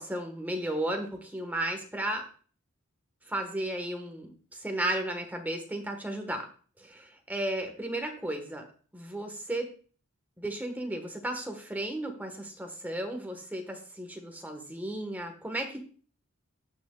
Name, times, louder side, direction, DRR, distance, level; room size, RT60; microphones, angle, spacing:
voice 1, 0.0-2.3 3.3-4.3 4.6-6.4 6.8-8.6 8.9-9.7 10.4-15.8, right 1 dB, 10° right, 4 dB, 1.2 m, -34 dB
16.0 x 6.1 x 2.2 m, 0.42 s
head